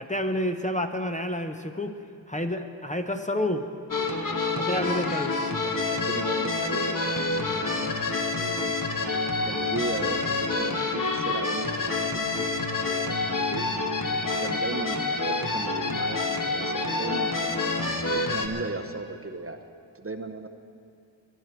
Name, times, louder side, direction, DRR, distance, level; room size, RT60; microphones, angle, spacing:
voice 1, 0.0-3.7 4.5-5.4, left 1 dB, 15° left, 5 dB, 0.7 m, -29 dB
sound 1, 3.9-18.5, left 3 dB, 45° left, 1.3 m, -27 dB
voice 2, 5.5-7.9 8.3-8.8 9.4-12.5 13.0-13.8 14.4-19.6 19.9-20.5, right 3 dB, 30° right, 7 dB, 0.7 m, -37 dB
21.5 x 11.0 x 4.5 m, 2.5 s
wide cardioid pair, 80°, 45 cm